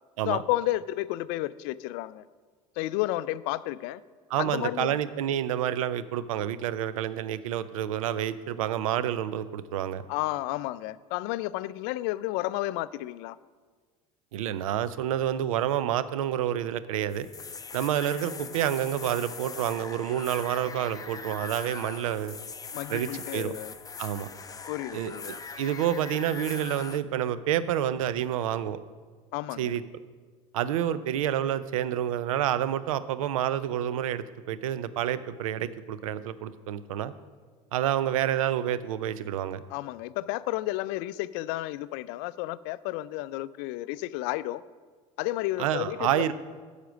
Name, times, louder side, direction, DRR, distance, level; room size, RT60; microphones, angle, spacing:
voice 1, 0.3-2.3 2.8-4.0 4.4-5.0 10.1-13.4 22.7-23.7 24.7-25.3 29.3-29.8 39.7-44.6 45.2-46.3, left 16 dB, 60° left, 18 dB, 0.4 m, -32 dB
voice 2, 4.3-10.0 14.3-17.3 17.7-22.4 22.9-23.5 24.0-24.3 24.9-25.1 25.6-28.8 29.6-29.8 30.5-37.1 37.7-39.6 45.6-46.3, right 11 dB, 80° right, 15 dB, 0.5 m, -28 dB
sound 1, 17.1-27.0, left 5 dB, 20° left, 0.6 m, -41 dB
10.0 x 6.5 x 6.0 m, 1.5 s
hypercardioid pair, 75°, 17 cm